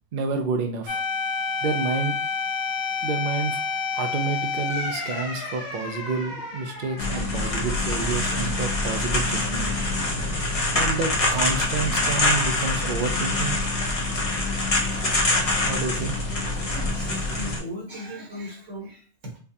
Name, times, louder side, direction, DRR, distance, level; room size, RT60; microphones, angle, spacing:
voice 1, 0.1-1.0 1.6-2.2 3.0-3.6 3.9-9.7 10.7-13.6 15.6-16.1, right 4 dB, 55° right, 4 dB, 0.6 m, -29 dB
sound 1, 0.9-9.5 9.9-10.0 14.9-15.4, left 4 dB, 60° left, 1.0 m, -31 dB
sound 2, 7.0-17.6, left 2 dB, 35° left, 0.7 m, -25 dB
voice 2, 16.5-19.4, equal, 75° right, -2 dB, 1.5 m, -37 dB
4.4 x 2.3 x 2.7 m, 0.43 s
omnidirectional pair, 1.3 m